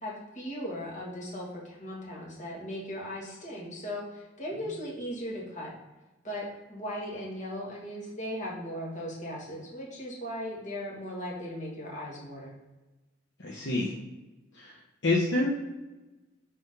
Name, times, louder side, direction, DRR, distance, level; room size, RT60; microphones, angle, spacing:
voice 1, 0.0-5.7 6.2-12.5, equal, 40° left, -4 dB, 2.2 m, -38 dB
voice 2, 13.4-13.9 14.5-14.7 15.0-15.5, left 2 dB, 60° left, -4 dB, 1.0 m, -27 dB
4.9 x 3.9 x 5.7 m, 1.1 s
head